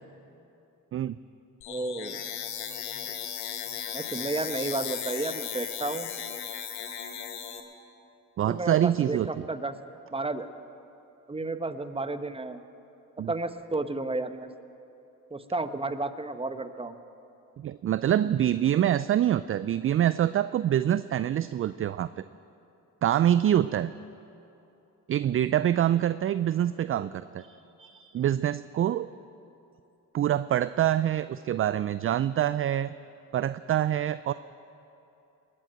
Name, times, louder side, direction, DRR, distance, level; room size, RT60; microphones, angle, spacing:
sound 1, 1.6-7.6, left 9 dB, 85° left, 1.3 m, -36 dB
voice 1, 1.7-2.2 3.0-3.1 3.9-6.1 8.4-9.8 10.1-10.5 11.3-12.6 13.3-14.5 15.3-17.0 26.8-27.1, right 2 dB, 15° right, 10 dB, 1.0 m, -32 dB
voice 2, 8.4-9.4 13.2-13.3 17.6-22.1 23.0-23.9 25.1-29.1 30.1-32.9 33.3-34.3, right 11 dB, 35° right, 15 dB, 0.4 m, -25 dB
20.0 x 7.7 x 8.9 m, 2.9 s
supercardioid pair, 60°, 38 cm